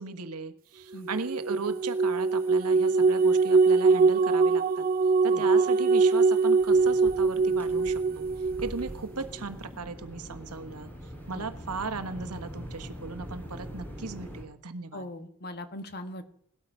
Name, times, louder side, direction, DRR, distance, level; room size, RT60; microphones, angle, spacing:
voice 1, 0.0-4.9 5.2-8.3 8.6-10.9 11.3-15.1, right 4 dB, 85° right, 10 dB, 1.4 m, -37 dB
sound 1, 1.1-8.9, right 4 dB, 40° right, 0.5 m, -23 dB
sound 2, 6.6-14.4, equal, 10° left, 4.1 m, -43 dB
voice 2, 14.9-16.2, left 1 dB, 45° left, 9 dB, 1.5 m, -40 dB
18.5 x 12.5 x 5.5 m, 0.67 s
head